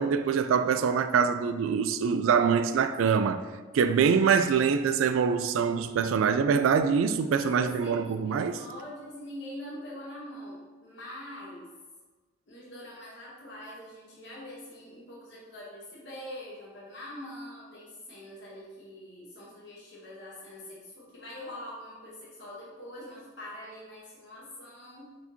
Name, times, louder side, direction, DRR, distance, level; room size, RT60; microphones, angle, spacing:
voice 1, 0.0-3.4 3.7-8.6, right 6 dB, 85° right, 0.3 m, -24 dB
voice 2, 5.8-6.6 7.3-11.7 12.5-25.2, left 1 dB, 60° left, 1.0 m, -44 dB
4.4 x 4.3 x 2.7 m
head